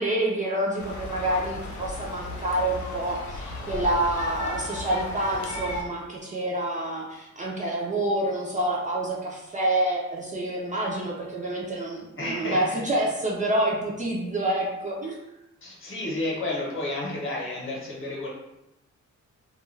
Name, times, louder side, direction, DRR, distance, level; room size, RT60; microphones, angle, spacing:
voice 1, 0.0-15.2, right 1 dB, 25° right, -4 dB, 0.4 m, -27 dB
sound 1, 0.8-5.8, left 1 dB, 75° left, 0.6 m, -35 dB
voice 2, 12.2-12.8 15.6-18.3, left 2 dB, 45° left, -4 dB, 0.9 m, -31 dB
2.3 x 2.2 x 3.1 m, 0.91 s
wide cardioid pair, 130°, 30 cm